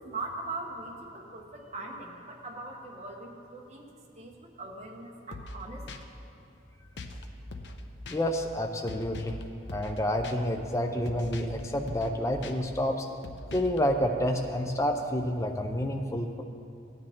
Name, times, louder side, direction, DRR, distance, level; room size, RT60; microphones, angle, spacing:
voice 1, 0.0-5.9, right 2 dB, 35° right, -1 dB, 1.1 m, -41 dB
sound 1, 5.3-5.6 5.9-6.0 7.0-7.2 7.5-7.8 8.1-8.2 8.9-9.4 9.7-10.0 10.2-10.3 11.1-11.6 11.9-12.1 12.4-12.5 13.2-13.8, left 2 dB, 65° left, 0.7 m, -41 dB
voice 2, 8.1-9.3 9.7-13.1 13.5-16.4, equal, 15° left, 3 dB, 0.4 m, -29 dB
15.5 x 9.7 x 3.6 m, 2.7 s
head